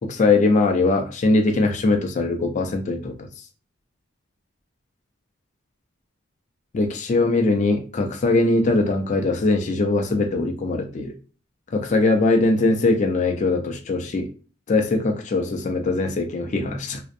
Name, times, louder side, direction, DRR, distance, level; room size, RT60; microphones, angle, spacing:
voice 1, 0.0-3.2 6.7-11.1 11.7-14.3 14.7-17.0, left 2 dB, 40° left, 4 dB, 0.3 m, -21 dB
2.5 x 2.0 x 2.5 m, 0.38 s
head